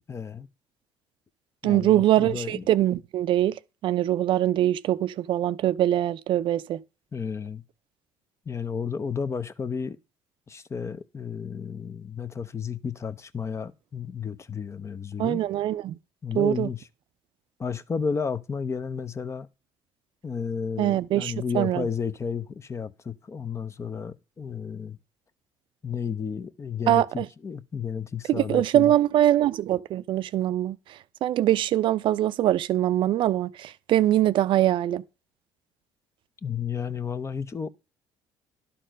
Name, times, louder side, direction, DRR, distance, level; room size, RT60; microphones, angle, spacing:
voice 1, 0.1-0.5 1.6-2.6 7.1-7.6 8.5-10.0 10.5-15.4 16.2-16.8 17.6-19.5 20.2-25.0 25.8-28.9 36.4-37.7, left 6 dB, 30° left, 0.6 m, -32 dB
voice 2, 1.6-3.6 3.8-6.8 15.2-16.0 16.3-16.7 20.8-21.8 26.9-27.3 28.3-35.0, right 13 dB, 60° right, 0.4 m, -23 dB
11.5 x 4.3 x 5.1 m
supercardioid pair, 75°, 9 cm